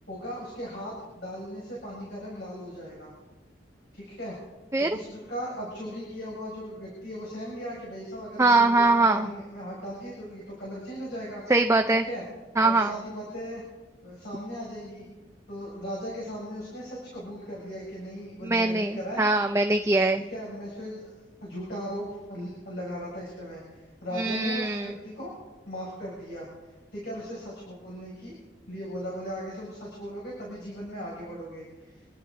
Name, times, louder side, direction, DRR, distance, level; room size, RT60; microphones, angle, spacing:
voice 1, 0.1-3.1 3.9-4.4 4.8-11.4 11.9-12.2 12.6-13.6 14.0-15.0 15.5-19.4 20.1-21.2 21.4-25.3 25.7-28.4 28.7-32.1, equal, 60° left, -5 dB, 6.4 m, -38 dB
voice 2, 8.4-9.3 11.5-12.0 12.6-12.9 18.4-20.2 24.2-24.9, right 2 dB, 15° right, 5 dB, 0.5 m, -22 dB
28.0 x 11.5 x 4.0 m, 1.2 s
head